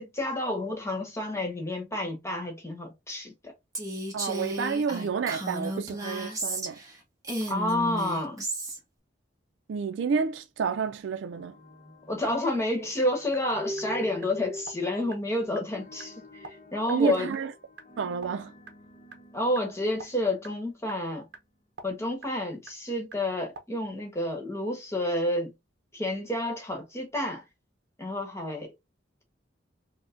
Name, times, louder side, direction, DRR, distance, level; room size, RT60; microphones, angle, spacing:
voice 1, 0.0-3.5 7.5-8.5 12.1-16.1 16.4-17.3 19.3-21.2 21.8-25.5 25.9-27.4 28.0-28.7, left 1 dB, 15° left, 1.1 m, -30 dB
Female speech woman speaking, 3.7-6.9 7.2-8.8, right 1 dB, 20° right, 1.0 m, -33 dB
voice 2, 4.1-6.8 9.7-11.6 16.9-17.5 18.0-18.5, right 6 dB, 80° right, 0.4 m, -29 dB
sound 1, 11.3-21.4, left 1 dB, 40° left, 0.8 m, -44 dB
sound 2, 13.3-13.4 13.8-13.9 14.2-14.3 14.6-14.7 15.1-15.2 15.5-15.6 16.0-16.1 16.4-16.5 16.9-17.0 17.3-17.4 17.8-17.9 18.2-18.3 18.7-18.8 19.1-19.2 19.5-19.6 20.0-20.1 20.4-23.6, right 3 dB, 60° right, 0.8 m, -44 dB
4.5 x 2.1 x 2.5 m
head